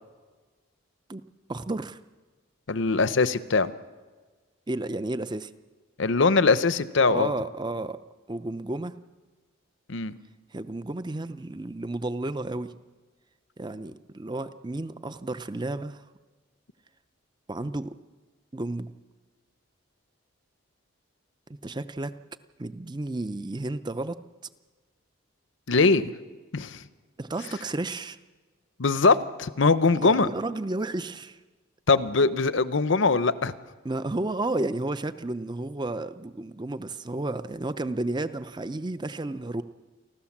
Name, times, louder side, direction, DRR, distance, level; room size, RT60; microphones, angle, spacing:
voice 1, 1.5-2.0 4.7-5.5 7.1-8.0 8.3-8.9 10.5-12.7 13.6-16.0 17.5-17.9 18.5-18.9 21.6-22.1 22.6-24.2 27.2-28.2 30.0-31.4 33.8-39.6, right 2 dB, 20° right, 12 dB, 0.6 m, -32 dB
voice 2, 2.7-3.7 6.0-7.3 9.9-10.2 25.7-26.1 26.5-26.8 28.8-30.3 31.9-33.5, left 4 dB, 60° left, 14 dB, 0.8 m, -22 dB
29.0 x 12.5 x 7.3 m, 1.4 s
head